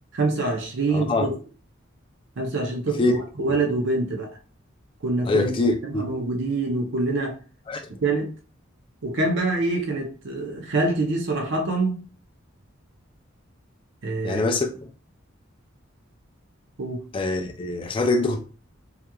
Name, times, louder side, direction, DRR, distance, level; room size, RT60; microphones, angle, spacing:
voice 1, 0.1-1.3 2.4-4.3 5.0-5.5 5.8-7.4 7.9-8.3 9.0-12.0 14.0-14.4 16.8-17.0, right 2 dB, 60° right, 0.6 m, -25 dB
voice 2, 0.9-1.3 3.0-3.1 3.5-3.6 5.3-6.1 7.7-7.8 14.2-14.7 17.1-18.4, left 3 dB, 25° left, 0.3 m, -23 dB
2.8 x 2.4 x 2.2 m
head